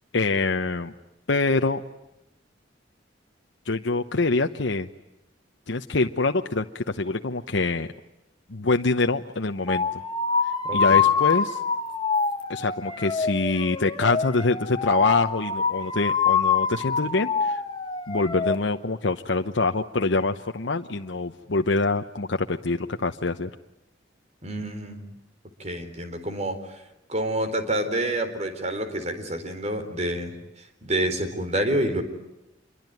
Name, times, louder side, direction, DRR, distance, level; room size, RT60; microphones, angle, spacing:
voice 1, 0.1-0.9 1.3-1.8 3.7-4.9 5.7-7.9 8.5-10.0 10.4-11.6 12.5-17.6 18.1-23.5, left 3 dB, 75° left, 5 dB, 1.0 m, -25 dB
sound 1, 9.7-18.6, left 6 dB, 25° left, 1.6 m, -25 dB
voice 2, 10.7-11.0 24.4-25.0 25.6-26.8 27.1-32.0, right 1 dB, 35° right, 8 dB, 4.1 m, -28 dB
27.0 x 23.0 x 9.4 m, 0.91 s
head